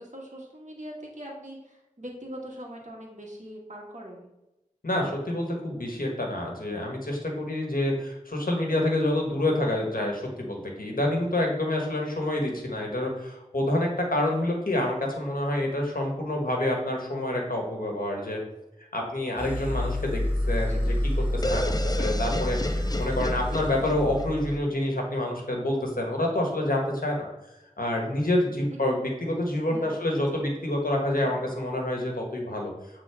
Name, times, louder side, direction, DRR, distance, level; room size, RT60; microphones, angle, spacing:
voice 1, 0.0-4.3 20.5-21.0 29.7-30.0 30.3-30.5 31.2-31.4, equal, 60° right, -3 dB, 1.8 m, -42 dB
voice 2, 4.8-18.4 18.9-20.2 20.5-27.3 27.8-32.7, left 1 dB, 85° left, 0 dB, 1.3 m, -27 dB
sound 1, 19.4-24.6, left 1 dB, 15° right, 2.2 m, -28 dB
sound 2, 21.4-25.2, left 1 dB, 25° left, 0.5 m, -33 dB
8.0 x 3.7 x 3.4 m, 0.94 s
wide cardioid pair, 40°, 14 cm